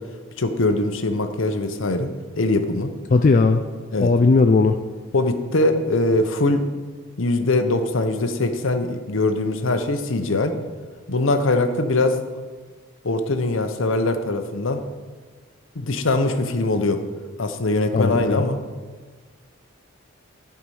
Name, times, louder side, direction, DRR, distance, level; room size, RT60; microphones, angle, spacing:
voice 1, 0.4-2.9 3.9-4.1 5.1-6.6 7.2-10.5 11.1-12.2 13.0-14.8 15.8-17.0 17.4-18.6, left 2 dB, 65° left, 8 dB, 0.8 m, -22 dB
voice 2, 3.1-3.6 4.0-4.8 17.9-18.4, left 3 dB, 40° left, 5 dB, 0.3 m, -17 dB
12.0 x 4.8 x 5.5 m, 1.4 s
head